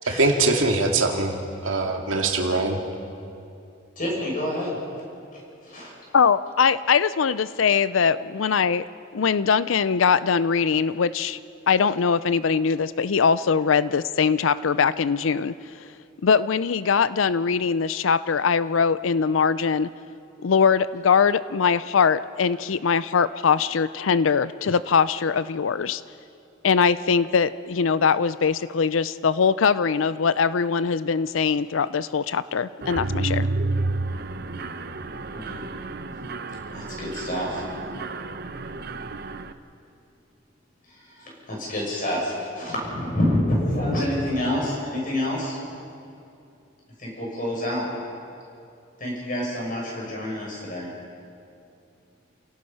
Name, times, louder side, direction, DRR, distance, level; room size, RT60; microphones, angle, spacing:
voice 1, 0.0-1.4 1.6-2.8, right 3 dB, 85° right, 2 dB, 2.3 m, -22 dB
voice 2, 4.0-4.8 5.3-5.9 35.3-35.6 36.7-37.6 40.9-45.6 47.0-47.9 49.0-50.9, left 1 dB, 45° left, -3 dB, 6.9 m, -28 dB
voice 3, 6.1-8.8 9.1-11.4 11.7-15.5 16.2-19.9 20.4-26.0 26.6-33.5, left 6 dB, 85° left, 16 dB, 0.5 m, -21 dB
Mechanisms, 32.8-39.5, right 2 dB, 55° right, 0.8 m, -30 dB
30.0 x 17.5 x 5.6 m, 2.6 s
head